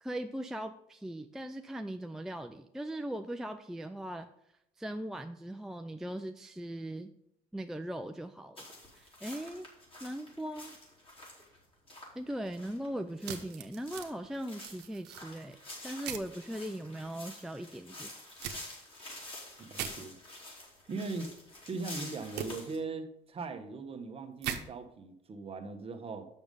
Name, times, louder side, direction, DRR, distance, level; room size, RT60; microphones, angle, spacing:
voice 1, 0.0-4.3 4.8-7.1 7.5-8.7 8.9-9.7 10.0-10.8 12.2-15.6 15.8-18.1, right 1 dB, 5° right, 6 dB, 0.4 m, -39 dB
sound 1, 8.6-22.8, left 1 dB, 30° left, 3.4 m, -48 dB
sound 2, 13.2-14.1 14.6-15.2 16.0-16.3 18.4-18.6 19.7-19.9 22.4-22.5 24.4-24.6, right 10 dB, 85° right, 0.9 m, -39 dB
voice 2, 19.6-20.2 20.9-21.3 21.6-26.3, right 4 dB, 35° right, 5 dB, 1.1 m, -39 dB
7.0 x 6.3 x 5.3 m, 0.79 s
cardioid pair, 110°, 17 cm